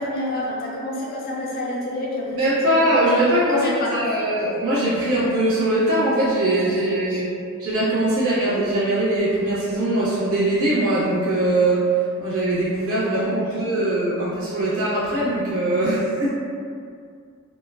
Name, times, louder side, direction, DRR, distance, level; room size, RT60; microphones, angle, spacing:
voice 1, 0.0-4.3 6.6-7.2 13.1-14.0, left 1 dB, 40° left, -4 dB, 0.5 m, -29 dB
voice 2, 2.4-3.6 3.9-7.3 7.6-11.9 12.2-16.3, right 1 dB, 65° right, -10 dB, 0.7 m, -21 dB
3.0 x 2.1 x 2.2 m, 2.2 s
head